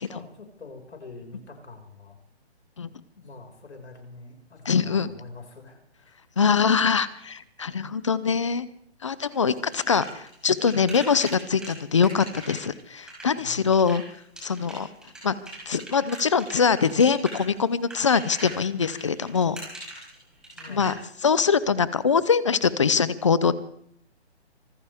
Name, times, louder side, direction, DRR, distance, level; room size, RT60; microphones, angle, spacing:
voice 1, 0.0-2.2 3.2-6.2 13.3-13.7 20.5-20.9 22.1-22.2, left 3 dB, 80° left, 3 dB, 5.7 m, -45 dB
voice 2, 4.7-5.1 6.4-8.7 9.0-14.0 14.4-14.9 15.2-15.3 15.7-19.6 20.7-20.9 21.2-23.5, left 6 dB, 30° left, 17 dB, 0.6 m, -23 dB
sound 1, 9.3-20.9, right 1 dB, ahead, 5.0 m, -41 dB
25.5 x 15.0 x 3.6 m, 0.68 s
hypercardioid pair, 165°, 33 cm